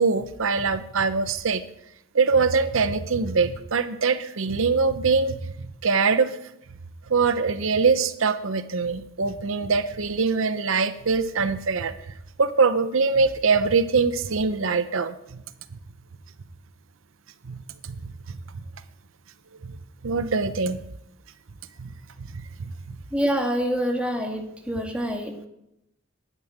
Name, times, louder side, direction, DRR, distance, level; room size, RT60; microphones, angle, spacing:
voice 1, 0.0-1.6 2.1-6.4 7.1-11.9 12.4-15.4 17.5-18.1 19.6-19.8 20.0-20.8 21.8-21.9 22.3-22.7, right 4 dB, 70° right, 11 dB, 0.8 m, -23 dB
voice 2, 23.1-25.5, equal, 5° right, 2 dB, 1.9 m, -26 dB
11.5 x 9.5 x 8.8 m, 0.82 s
head